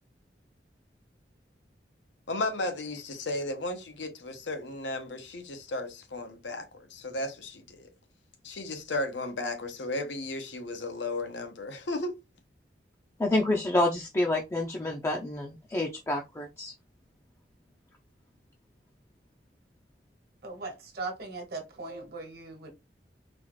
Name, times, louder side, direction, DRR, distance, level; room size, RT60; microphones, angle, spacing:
voice 1, 2.3-7.9 8.4-12.2, left 2 dB, 90° left, 0.8 m, -34 dB
voice 2, 13.2-16.7, left 2 dB, 15° left, 0.5 m, -28 dB
voice 3, 20.4-22.7, right 3 dB, 60° right, 1.3 m, -39 dB
4.1 x 2.4 x 3.0 m
head